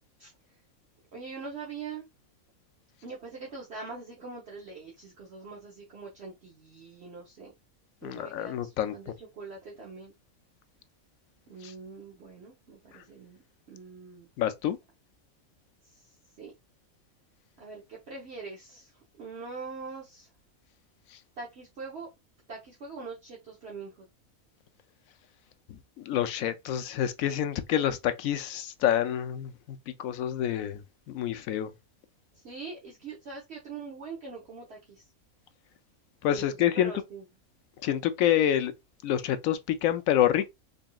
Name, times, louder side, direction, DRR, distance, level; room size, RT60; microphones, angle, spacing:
voice 1, 1.1-2.0 3.0-7.5 8.0-10.1 11.5-13.4 13.7-14.3 15.8-16.1 16.4-16.5 17.6-18.9 19.2-20.3 21.4-22.1 22.5-24.0 32.3-35.0 36.3-36.4 36.7-37.2, right 4 dB, 50° right, 1.1 m, -43 dB
voice 2, 8.0-9.1 11.6-11.7 12.9-13.0 14.4-14.8 21.1-21.2 25.7-31.7 36.2-36.9 37.8-38.7 39.0-40.5, left 11 dB, 75° left, 1.0 m, -28 dB
3.9 x 3.5 x 2.3 m
omnidirectional pair, 1.5 m